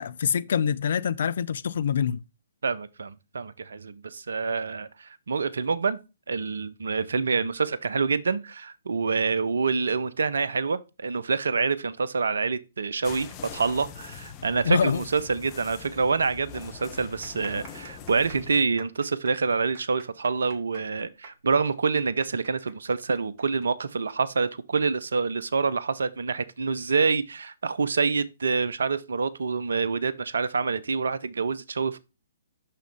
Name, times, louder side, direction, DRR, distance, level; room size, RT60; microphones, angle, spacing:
voice 1, 0.0-2.2 14.6-15.0, left 7 dB, 50° left, 0.4 m, -25 dB
voice 2, 2.6-6.0 6.3-32.0, right 4 dB, 60° right, 0.5 m, -27 dB
sound 1, 13.0-18.6, left 7 dB, 25° left, 0.7 m, -43 dB
sound 2, 17.0-24.1 24.4-24.5 25.3-25.6, right 4 dB, 35° right, 1.2 m, -49 dB
6.0 x 5.6 x 3.4 m
figure-of-eight pair, 125°, 0 cm